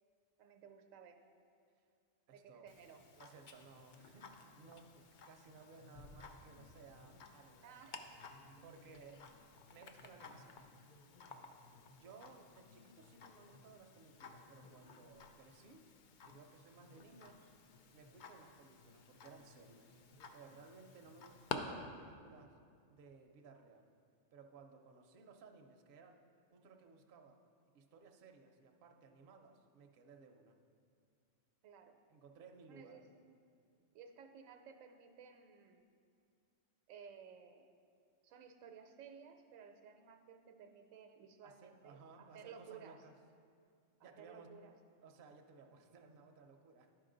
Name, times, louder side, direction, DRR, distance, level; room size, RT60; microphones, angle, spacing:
voice 1, 0.4-1.2 2.3-3.0 7.6-8.0 16.9-17.2 31.6-32.0 32.7-33.0 33.9-35.8 36.9-37.7 38.2-43.0 44.2-44.7, right 7 dB, 80° right, 6 dB, 1.0 m, -56 dB
voice 2, 2.3-2.7 3.2-8.1 8.6-9.3 9.7-10.5 12.0-15.8 16.2-17.5 17.9-20.0 20.3-22.6 22.9-23.9 24.3-26.2 26.5-27.4 27.7-30.6 32.1-33.2 41.4-43.1 44.0-44.5 45.0-46.9, right 4 dB, 55° right, 3 dB, 0.7 m, -59 dB
Tick-tock, 2.7-21.6, left 5 dB, 70° left, 0.4 m, -54 dB
11.5 x 4.8 x 3.8 m, 2.3 s
omnidirectional pair, 1.4 m